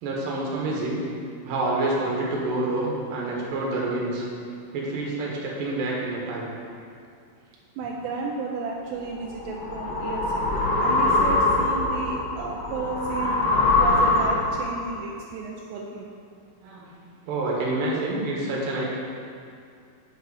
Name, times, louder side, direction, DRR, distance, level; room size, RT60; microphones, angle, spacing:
voice 1, 0.0-1.0 1.4-4.3 4.7-6.5 13.2-13.4 16.6-16.9 17.3-18.8, right 2 dB, 60° right, -3 dB, 2.5 m, -27 dB
voice 2, 7.8-16.1, right 4 dB, 85° right, -1 dB, 2.4 m, -33 dB
sound 1, 9.0-14.8, left 2 dB, 70° left, 2.4 m, -23 dB
7.9 x 7.4 x 5.0 m, 2.4 s
omnidirectional pair, 5.6 m